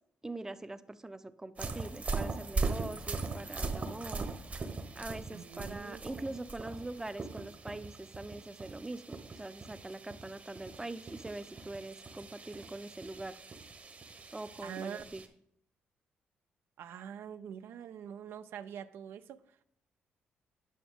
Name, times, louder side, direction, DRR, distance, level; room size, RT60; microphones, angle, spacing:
voice 1, 0.2-4.3 4.9-13.4 14.3-15.2, right 2 dB, 15° right, 12 dB, 0.5 m, -43 dB
sound 1, 1.6-15.3, right 3 dB, 35° right, 0.9 m, -40 dB
voice 2, 5.3-6.3 14.6-15.0 16.8-19.6, right 8 dB, 80° right, 11 dB, 0.4 m, -45 dB
9.3 x 5.9 x 3.6 m, 0.68 s
cardioid pair, 75°, 4 cm